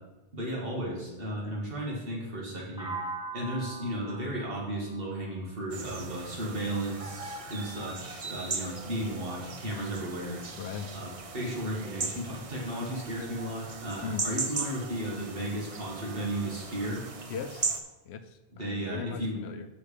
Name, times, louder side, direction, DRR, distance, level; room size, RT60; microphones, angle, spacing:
voice 1, 0.3-2.9 3.3-10.4 10.9-17.0 18.5-19.4, right 1 dB, 60° right, -3 dB, 1.9 m, -34 dB
sound 1, 2.8-6.7, right 3 dB, 5° right, 0.8 m, -42 dB
sound 2, 5.7-17.8, right 4 dB, 40° right, 0.6 m, -38 dB
voice 2, 10.6-10.9 14.0-14.3 17.3-17.8 18.1-19.6, left 7 dB, 85° left, 9 dB, 0.9 m, -38 dB
6.2 x 5.1 x 6.6 m, 1.0 s
omnidirectional pair, 1.1 m